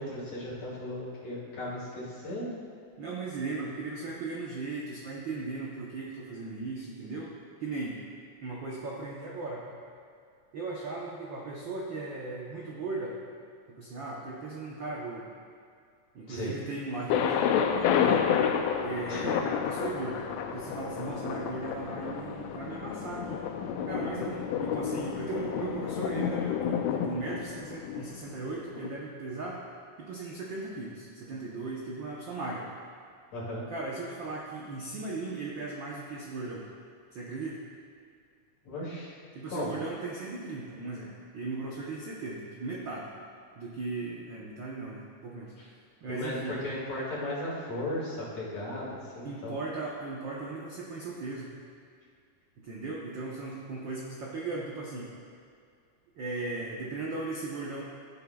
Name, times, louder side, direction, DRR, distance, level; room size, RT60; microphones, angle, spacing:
voice 1, 0.0-2.5 16.3-16.6 19.1-19.3 33.3-33.6 38.6-39.1 39.5-39.7 46.1-49.6, left 1 dB, 60° left, -7 dB, 3.6 m, -36 dB
voice 2, 3.0-7.3 7.6-8.0 8.4-9.8 10.5-13.2 13.7-15.3 16.1-18.5 18.8-20.3 20.5-23.4 23.9-29.6 30.0-32.7 33.7-36.7 37.1-37.6 39.3-43.1 43.6-46.6 49.2-51.5 52.6-55.1 56.1-57.8, right 3 dB, 75° right, -4 dB, 1.0 m, -37 dB
Thunder, 17.1-28.9, left 8 dB, 80° left, 1.6 m, -30 dB
15.5 x 7.8 x 2.3 m, 2.3 s
omnidirectional pair, 3.5 m